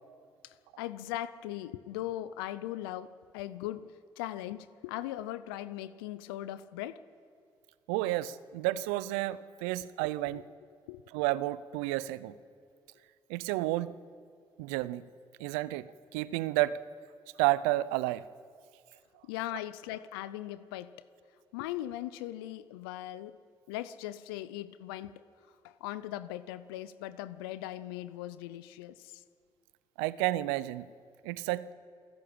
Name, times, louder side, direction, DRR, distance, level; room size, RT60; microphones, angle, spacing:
voice 1, 0.4-7.0 10.3-10.4 10.9-11.0 19.2-20.9 21.5-23.4 23.7-25.2 25.6-29.2, left 14 dB, 85° left, 15 dB, 0.5 m, -39 dB
voice 2, 7.9-10.4 11.1-12.3 13.3-14.0 14.6-15.0 15.4-16.8 17.4-18.2 30.0-30.9 31.2-31.7, right 16 dB, 85° right, 18 dB, 0.6 m, -31 dB
27.0 x 12.5 x 8.7 m, 2.3 s
hypercardioid pair, 40°, 12 cm